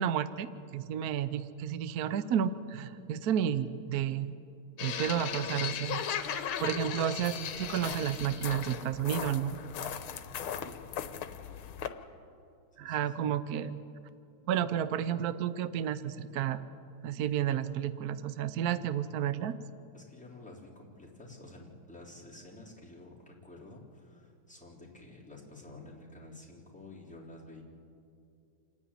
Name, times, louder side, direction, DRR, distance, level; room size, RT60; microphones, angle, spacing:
voice 1, 0.0-4.4 4.8-9.6 12.8-13.8 14.5-16.6 17.0-19.5, right 9 dB, 65° right, 13 dB, 0.9 m, -32 dB
sound 1, 4.8-11.9, left 9 dB, 75° left, 1.7 m, -37 dB
voice 2, 12.8-13.4 19.9-27.6, left 2 dB, 5° left, -5 dB, 3.6 m, -51 dB
28.5 x 9.9 x 9.8 m, 2.6 s
omnidirectional pair, 2.4 m